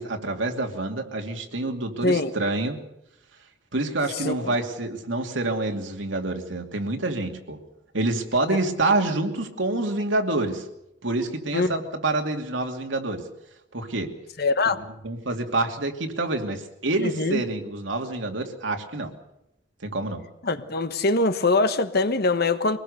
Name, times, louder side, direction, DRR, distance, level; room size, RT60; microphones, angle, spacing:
voice 1, 0.0-2.8 3.7-7.6 7.9-10.6 11.0-13.2 13.7-14.1 15.0-19.1 19.8-20.2, right 2 dB, 75° right, 2.7 m, -27 dB
voice 2, 2.0-2.3 4.2-4.5 11.5-11.7 14.4-14.8 17.0-17.4 20.4-22.8, left 3 dB, 55° left, 1.3 m, -23 dB
24.5 x 19.5 x 6.7 m
head